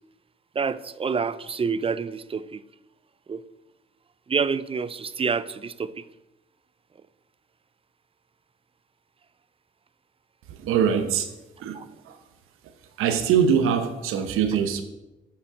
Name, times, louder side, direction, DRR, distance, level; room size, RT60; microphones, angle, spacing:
voice 1, 0.6-2.6 3.3-3.4 4.3-5.9 11.7-11.9, right 5 dB, 25° right, 16 dB, 0.4 m, -27 dB
voice 2, 10.5-11.3 11.6-11.8 12.0-12.2 13.0-14.8, right 7 dB, 85° right, 8 dB, 0.8 m, -23 dB
7.0 x 5.7 x 4.9 m, 0.99 s
supercardioid pair, 60°, 21 cm